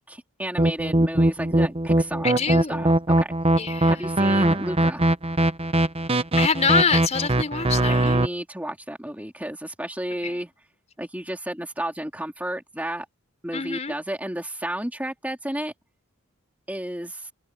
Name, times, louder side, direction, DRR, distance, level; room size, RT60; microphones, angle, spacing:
voice 1, 0.0-2.4 2.7-3.3 3.9-5.1 7.8-10.5 11.0-13.1 13.4-15.7 16.7-17.3, right 1 dB, 5° right, 2.9 m, -32 dB
sound 1, 0.6-8.3, right 1 dB, 25° right, 1.1 m, -21 dB
voice 2, 2.2-2.8 3.6-4.1 6.4-8.2 10.2-10.4 13.5-13.9, left 5 dB, 30° left, 4.6 m, -25 dB
open air
head